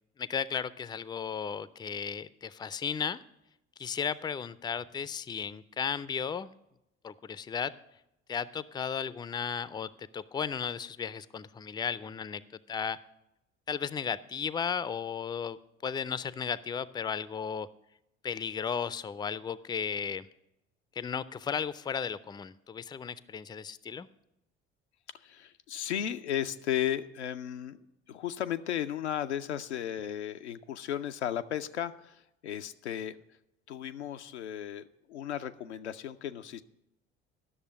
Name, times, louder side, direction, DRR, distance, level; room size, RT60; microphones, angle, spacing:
voice 1, 0.2-3.2 3.8-6.5 7.0-7.7 8.3-12.4 12.7-13.0 13.7-17.7 18.2-20.3 21.0-24.1, left 7 dB, 15° left, 18 dB, 0.4 m, -35 dB
voice 2, 25.1-27.8 28.1-33.2 33.7-36.6, left 10 dB, 90° left, 8 dB, 0.5 m, -35 dB
11.0 x 6.7 x 7.3 m, 0.85 s
figure-of-eight pair, 55°, 33 cm